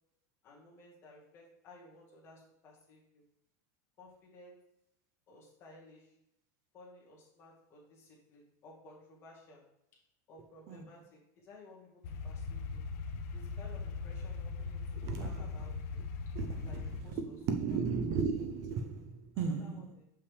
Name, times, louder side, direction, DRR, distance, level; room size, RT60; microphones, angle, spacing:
voice 1, 0.4-3.2 4.0-4.7 5.3-6.2 6.7-9.7 10.3-12.9 13.3-16.0 16.7-17.4 17.7-17.8 18.1-18.2 19.3-20.0, left 2 dB, 25° left, 1.8 m, -57 dB
sound 1, 12.0-17.0, left 4 dB, 60° left, 0.6 m, -40 dB
voice 2, 16.4-16.7 17.2-19.9, right 5 dB, 35° right, 0.5 m, -34 dB
6.7 x 5.6 x 3.3 m
supercardioid pair, 175°, 10 cm